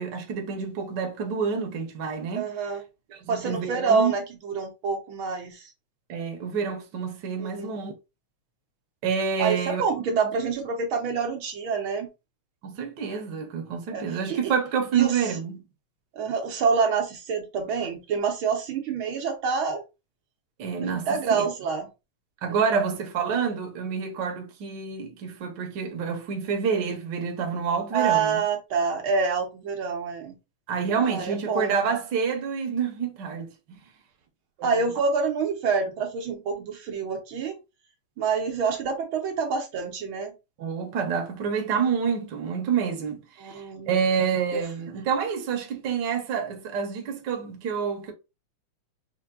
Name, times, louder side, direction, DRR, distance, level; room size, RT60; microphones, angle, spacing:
voice 1, 0.0-2.5 3.1-4.1 6.1-7.9 9.0-9.8 10.1-10.2 12.6-15.6 20.6-21.5 22.4-28.4 30.7-33.5 34.6-34.9 40.6-48.1, right 6 dB, 90° right, 0.9 m, -28 dB
voice 2, 2.3-2.8 3.3-5.7 7.4-7.7 9.4-12.1 13.9-14.5 14.9-15.2 16.1-19.8 20.8-21.9 22.5-22.9 27.9-30.4 31.0-31.8 34.6-37.6 38.2-40.3 43.4-43.9 44.5-44.6, right 5 dB, 70° right, 1.3 m, -27 dB
5.6 x 2.2 x 3.7 m
omnidirectional pair, 3.4 m